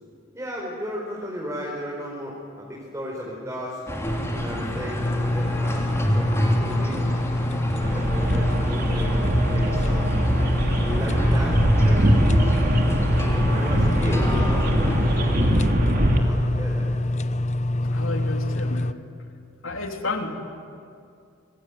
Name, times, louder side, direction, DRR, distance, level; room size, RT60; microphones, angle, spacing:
voice 1, 0.3-3.8 4.2-5.9 6.1-7.0 7.7-10.2 10.9-12.5 13.2-16.9, equal, 15° right, -3 dB, 4.4 m, -35 dB
sound 1, 3.9-15.6, equal, 15° left, 3.4 m, -27 dB
sound 2, 5.0-18.9, left 1 dB, 35° left, 0.7 m, -26 dB
sound 3, 7.8-16.2, right 1 dB, 45° right, 2.9 m, -23 dB
voice 2, 13.8-14.2 17.8-19.0 19.6-20.3, left 2 dB, 75° left, 4 dB, 3.1 m, -32 dB
26.0 x 22.5 x 9.3 m, 2.4 s
head